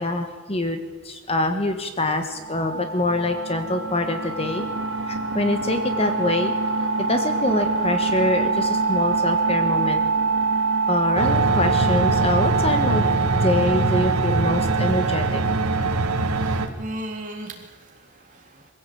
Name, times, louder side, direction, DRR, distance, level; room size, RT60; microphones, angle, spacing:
voice 1, 0.0-4.6 5.1-6.5 7.0-10.0 10.9-13.0 13.4-15.4, left 2 dB, 25° left, 7 dB, 1.5 m, -25 dB
sound 1, 2.4-15.9, right 4 dB, 60° right, 2.6 m, -25 dB
sound 2, 11.2-16.7, right 3 dB, 85° right, 1.9 m, -22 dB
voice 2, 16.2-18.7, right 1 dB, 35° right, 1 dB, 3.6 m, -37 dB
23.0 x 16.0 x 8.7 m, 1.4 s
head